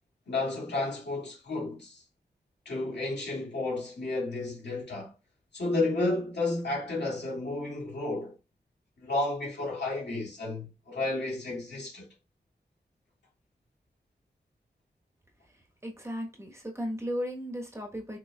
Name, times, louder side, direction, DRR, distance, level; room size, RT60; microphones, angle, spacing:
voice 1, 0.3-2.0 2.7-5.1 5.5-8.4 9.0-12.1, left 2 dB, 80° left, 2.3 m, -32 dB
voice 2, 15.5-18.2, equal, 15° right, 1.2 m, -36 dB
6.4 x 2.9 x 2.3 m
wide cardioid pair, 80°, 17 cm